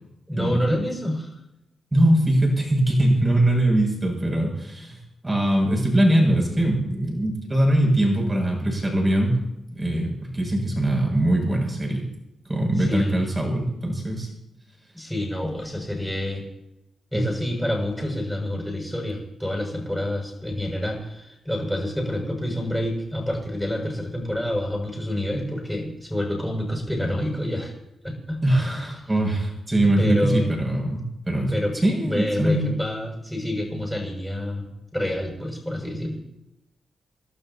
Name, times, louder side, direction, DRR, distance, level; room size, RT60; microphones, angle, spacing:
voice 1, 0.3-1.3 12.8-13.3 14.9-16.4 17.1-27.7 28.0-29.0 30.0-30.6 31.5-31.7 32.0-34.7 34.9-36.2, left 1 dB, 5° left, -1 dB, 6.7 m, -28 dB
voice 2, 1.9-5.0 5.2-9.4 9.7-12.1 12.5-14.3 28.4-31.0 31.3-31.5 31.8-32.7, right 1 dB, 20° right, 0 dB, 7.2 m, -22 dB
29.5 x 12.0 x 2.9 m, 0.89 s
cardioid pair, 80°, 0 cm